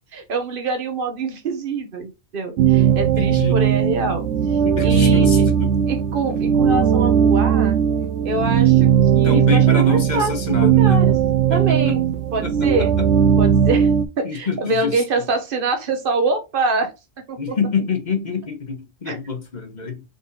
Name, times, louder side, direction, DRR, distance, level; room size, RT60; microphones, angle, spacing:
voice 1, 0.1-5.5 5.9-7.8 8.2-10.3 10.8-11.1 11.5-12.0 12.3-13.0 13.4-13.9 14.2-16.9 17.3-17.6 19.0-19.2, right 3 dB, 50° right, 1.1 m, -25 dB
sound 1, 2.6-14.0, right 8 dB, 80° right, 0.9 m, -17 dB
voice 2, 3.0-3.6 4.6-5.8 9.2-11.0 11.5-11.9 12.4-12.5 14.2-15.0 17.4-20.0, left 5 dB, 45° left, 1.0 m, -26 dB
3.9 x 3.4 x 3.9 m
omnidirectional pair, 1.2 m